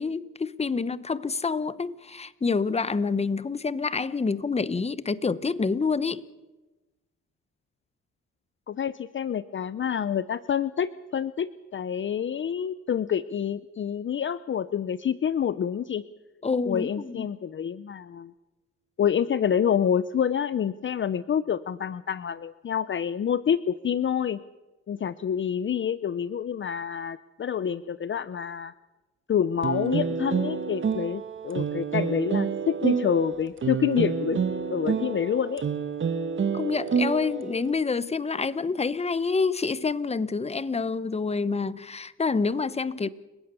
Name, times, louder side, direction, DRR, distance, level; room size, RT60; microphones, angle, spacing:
voice 1, 0.0-6.2 16.4-17.3 36.5-43.1, left 4 dB, 20° left, 17 dB, 1.0 m, -27 dB
voice 2, 8.7-16.0 16.7-18.3 19.0-24.4 24.9-28.7 29.3-34.4 34.7-35.7, left 8 dB, 40° left, 16 dB, 0.7 m, -27 dB
sound 1, 29.6-37.7, right 6 dB, 40° right, 1.5 m, -28 dB
30.0 x 16.0 x 6.9 m, 1.1 s
cardioid pair, 90°, 30 cm